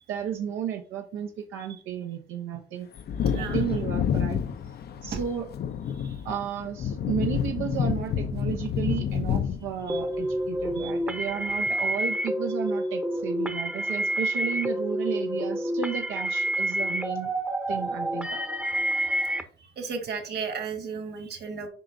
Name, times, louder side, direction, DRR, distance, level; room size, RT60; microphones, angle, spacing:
voice 1, 0.1-2.9 3.3-4.4 5.0-5.5 6.2-17.3 17.7-18.4, right 8 dB, 85° right, 3 dB, 0.7 m, -33 dB
Wind / Thunder, 2.9-11.2 11.5-11.6, left 8 dB, 55° left, 0.5 m, -29 dB
voice 2, 3.2-3.6 5.1-5.2 5.9-6.3 9.9-10.0 10.7-10.9 19.6-21.7, right 5 dB, 55° right, 5 dB, 1.6 m, -35 dB
sound 1, 9.9-19.4, right 1 dB, 5° right, 0.7 m, -28 dB
7.5 x 5.0 x 2.6 m, 0.42 s
cardioid pair, 90°, 20 cm